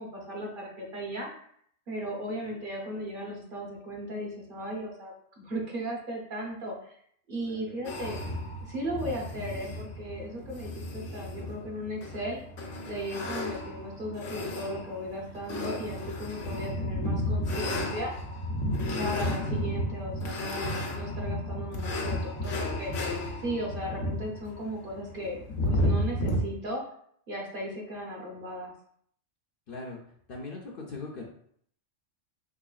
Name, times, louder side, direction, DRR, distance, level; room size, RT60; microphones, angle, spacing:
voice 1, 0.0-1.5 1.9-6.9 7.3-8.2 8.7-12.4 12.9-18.1 19.0-22.9 23.4-25.4 25.6-26.8 27.3-28.7, equal, 50° right, -2 dB, 0.9 m, -36 dB
voice 2, 7.4-7.8 18.9-19.2 29.7-30.0 30.3-31.2, left 3 dB, 60° left, -1 dB, 0.6 m, -40 dB
sound 1, 7.8-26.4, left 1 dB, 80° left, 1.0 m, -33 dB
3.8 x 3.2 x 2.4 m, 0.65 s
omnidirectional pair, 1.2 m